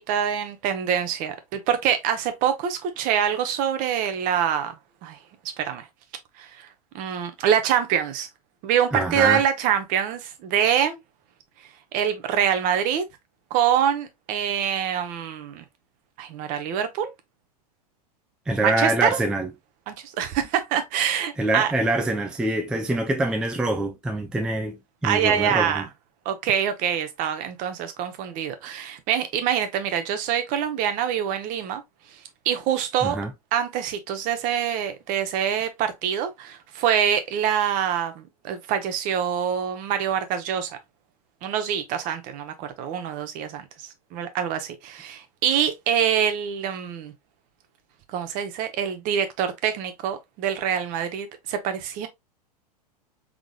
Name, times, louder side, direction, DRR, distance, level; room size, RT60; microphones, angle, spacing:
voice 1, 0.0-4.7 5.0-5.2 5.6-5.9 6.4-6.7 6.9-8.3 8.6-11.0 11.9-13.0 13.5-15.6 16.2-17.1 18.6-19.2 19.9-21.7 25.0-25.9 26.2-31.8 32.4-33.2 33.5-40.8 41.4-47.1 48.1-52.1, right 9 dB, 40° right, 0.9 m, -25 dB
voice 2, 8.9-9.4 18.5-19.5 21.4-25.9 33.0-33.3, right 2 dB, 5° right, 0.4 m, -25 dB
3.7 x 3.6 x 2.3 m
figure-of-eight pair, 100°, 21 cm